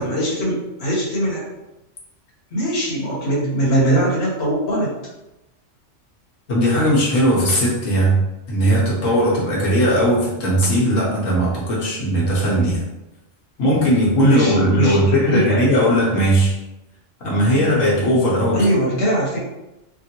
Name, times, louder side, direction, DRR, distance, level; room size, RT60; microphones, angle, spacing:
voice 1, 0.0-1.4 2.5-4.9 14.2-16.0 18.5-19.4, right 1 dB, 55° left, -5 dB, 1.1 m, -21 dB
voice 2, 6.5-8.2 8.5-12.8 13.6-16.5 17.2-18.6, equal, 80° left, -6 dB, 1.3 m, -18 dB
3.6 x 2.2 x 2.8 m, 0.97 s
omnidirectional pair, 1.3 m